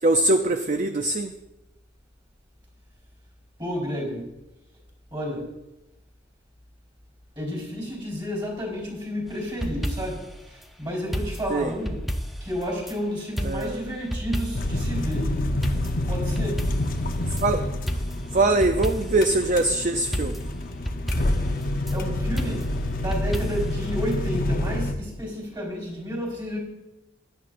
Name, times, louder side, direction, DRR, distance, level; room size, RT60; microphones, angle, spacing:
voice 1, 0.0-1.3 11.5-11.7 13.4-13.9 17.4-17.6 18.3-20.4, right 2 dB, 40° right, 7 dB, 0.5 m, -22 dB
voice 2, 3.6-4.3 5.1-5.5 7.4-10.2 10.8-12.0 12.4-15.3 16.1-16.6 21.9-22.7 23.0-26.6, equal, 25° right, -1 dB, 4.1 m, -31 dB
sound 1, 9.3-10.3 11.1-13.0 13.4-14.8 15.1-15.2 15.6-17.5 17.9-19.3 19.6-19.7 20.1-21.9 22.4-23.8 24.1-24.2, equal, ahead, 0.6 m, -31 dB
sound 2, 14.5-24.9, left 1 dB, 50° left, 0.8 m, -28 dB
16.0 x 11.0 x 2.6 m, 0.98 s
head